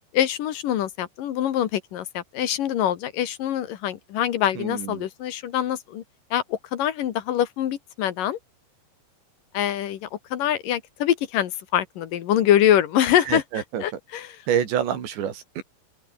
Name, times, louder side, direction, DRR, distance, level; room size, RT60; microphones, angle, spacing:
voice 1, 0.1-6.0 6.3-8.4 9.5-14.5, left 11 dB, 60° left, 2.6 m, -24 dB
voice 2, 4.6-5.1 13.3-13.8 14.5-15.6, right 9 dB, 80° right, 5.5 m, -27 dB
open air
omnidirectional pair, 5.0 m